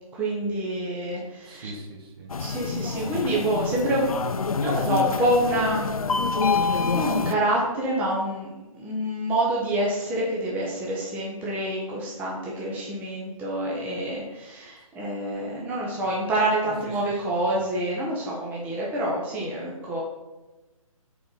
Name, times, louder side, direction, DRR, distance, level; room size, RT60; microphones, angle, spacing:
voice 1, 0.1-1.7 2.4-6.0 6.9-8.5 8.8-20.0, right 1 dB, 10° right, -5 dB, 0.8 m, -27 dB
voice 2, 1.4-2.3, right 1 dB, 40° right, 2 dB, 1.4 m, -43 dB
sound 1, 2.3-7.3, left 4 dB, 75° left, 0.5 m, -27 dB
5.1 x 4.8 x 6.0 m, 1.1 s
figure-of-eight pair, 140°, 18 cm